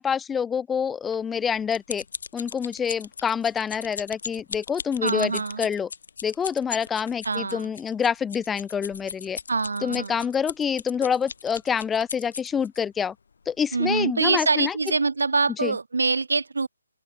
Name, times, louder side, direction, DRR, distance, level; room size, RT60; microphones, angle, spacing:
voice 1, 0.0-2.0 2.3-5.9 6.2-9.4 9.8-13.1 13.5-14.8 15.6-15.7, left 7 dB, 5° left, 0.8 m, -27 dB
sound 1, 1.1-12.8 13.4-13.6 14.0-14.1, left 5 dB, 50° left, 3.2 m, -38 dB
voice 2, 5.0-5.7 7.2-7.7 9.5-10.2 13.7-16.7, right 4 dB, 80° right, 2.2 m, -25 dB
open air
hypercardioid pair, 170°, 0 cm